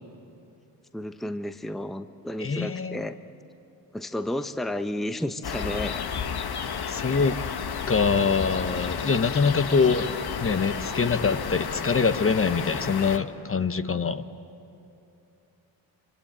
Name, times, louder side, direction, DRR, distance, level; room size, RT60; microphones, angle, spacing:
voice 1, 0.9-3.2 3.9-6.0, left 1 dB, ahead, 9 dB, 0.9 m, -32 dB
voice 2, 2.4-3.0 6.9-7.4 7.9-10.1 10.4-14.3, left 5 dB, 30° left, 10 dB, 1.0 m, -24 dB
sound 1, 5.4-13.2, left 6 dB, 55° left, 1.6 m, -32 dB
25.5 x 25.0 x 8.8 m, 2.8 s
supercardioid pair, 65°, 45 cm